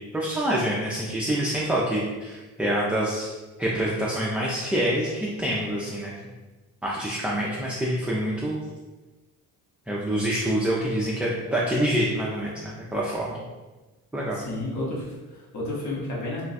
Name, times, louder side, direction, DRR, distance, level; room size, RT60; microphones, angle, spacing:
voice 1, 0.1-3.3 3.6-6.1 6.8-8.6 9.9-13.4 14.1-14.4, right 1 dB, 5° right, -5 dB, 0.3 m, -26 dB
voice 2, 14.3-16.4, left 2 dB, 55° left, -5 dB, 1.1 m, -31 dB
2.4 x 2.2 x 4.0 m, 1.2 s
cardioid pair, 110°, 36 cm